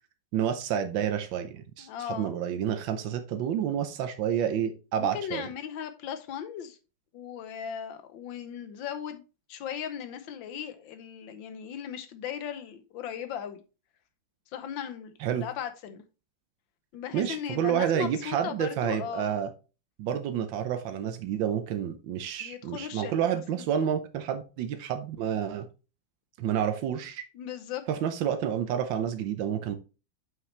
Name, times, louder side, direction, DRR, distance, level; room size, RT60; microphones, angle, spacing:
voice 1, 0.3-5.5 15.2-15.5 17.1-19.5 20.0-25.7 26.4-27.2 27.9-29.8, right 9 dB, 85° right, 1.5 m, -29 dB
voice 2, 1.8-2.3 5.0-6.8 7.1-9.2 9.5-13.6 14.5-16.0 16.9-19.3 22.4-23.6 27.3-27.8, left 9 dB, 85° left, 1.6 m, -37 dB
7.6 x 5.8 x 3.2 m
omnidirectional pair, 2.0 m